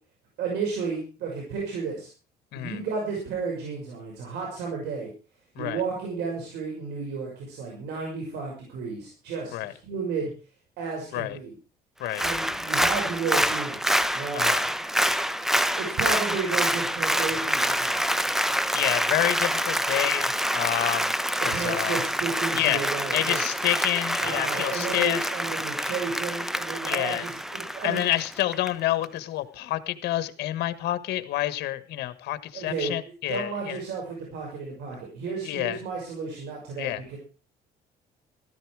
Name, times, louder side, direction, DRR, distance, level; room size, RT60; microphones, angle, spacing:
voice 1, 0.4-2.1 2.6-5.1 5.6-10.3 10.8-11.6 12.2-14.4 15.8-18.0 21.5-23.5 24.2-28.1 32.5-32.9 33.3-37.2, right 5 dB, 80° right, -1 dB, 6.0 m, -32 dB
Applause, 12.1-28.7 29.0-29.1, equal, ahead, 0.8 m, -26 dB
voice 2, 14.3-14.6 18.7-21.1 21.4-22.0 22.5-22.8 23.1-25.3 26.9-27.2 27.8-33.8 35.4-35.8 36.8-37.0, left 14 dB, 75° left, 12 dB, 1.4 m, -28 dB
14.5 x 13.5 x 4.8 m, 0.35 s
cardioid pair, 110°, 17 cm